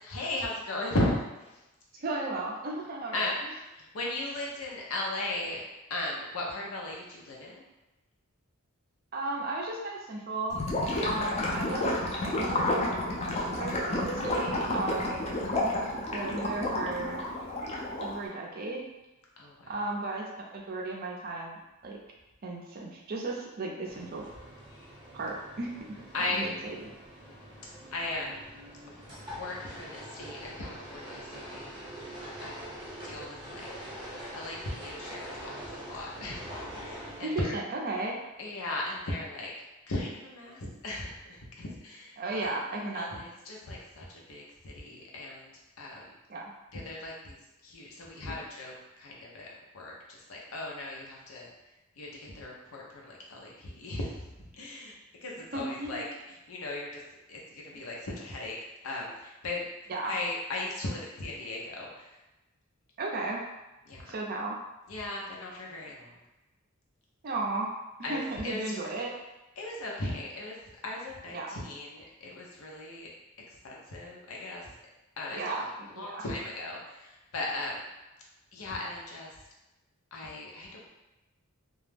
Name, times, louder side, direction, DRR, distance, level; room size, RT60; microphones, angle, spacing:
voice 1, 0.0-1.3 3.1-3.3 3.8-5.6 5.9-7.6 19.4-19.7 26.1-26.4 27.9-28.4 28.9-29.0 29.4-31.6 32.4-32.7 33.0-33.7 34.3-36.5 36.8-37.6 38.4-39.5 39.9-42.6 42.9-46.1 46.7-47.4 47.6-49.5 49.7-51.5 52.0-54.2 54.6-54.9 55.2-56.0 56.5-57.0 57.3-58.6 58.8-59.7 60.0-62.1 63.9-64.1 64.9-66.1 68.0-68.8 69.6-70.6 70.8-73.1 73.6-74.6 75.2-75.7 75.9-77.9 78.5-79.3 80.1-80.9, left 2 dB, 75° left, -2 dB, 0.6 m, -37 dB
voice 2, 2.0-3.3 9.1-10.6 11.0-11.9 12.2-12.7 13.6-15.2 16.1-17.3 17.9-18.9 19.7-22.0 22.4-24.3 25.1-25.7 26.3-26.9 37.2-38.2 42.2-43.3 46.3-46.5 55.5-56.2 59.9-60.2 63.0-63.4 64.1-64.6 67.2-67.7 68.1-69.1 71.3-71.5 75.3-76.3, right 2 dB, 45° right, -1 dB, 0.5 m, -35 dB
Gurgling / Liquid, 10.5-18.2, left 1 dB, 30° left, 0.4 m, -30 dB
sound 1, 23.8-37.2, equal, 20° right, 0.8 m, -44 dB
2.3 x 2.0 x 3.2 m, 1.0 s
head